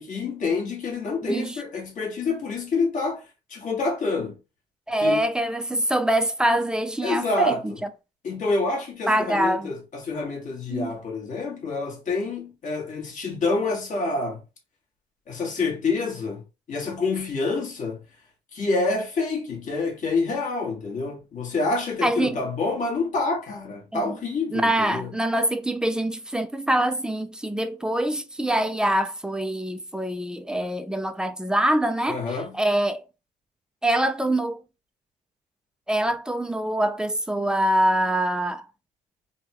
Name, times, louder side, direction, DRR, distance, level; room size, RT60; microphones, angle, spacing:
voice 1, 0.0-4.4 5.0-5.3 7.0-7.8 8.2-14.4 15.3-16.4 16.7-18.0 18.5-25.1 32.1-32.5, left 3 dB, 50° left, 1.3 m, -27 dB
voice 2, 4.9-7.7 9.1-9.7 10.7-10.9 22.0-22.4 23.9-24.2 24.5-32.2 32.5-33.0 33.8-34.6 35.9-38.6, right 1 dB, 5° right, 0.4 m, -24 dB
3.4 x 2.2 x 2.9 m
cardioid pair, 110°, 17 cm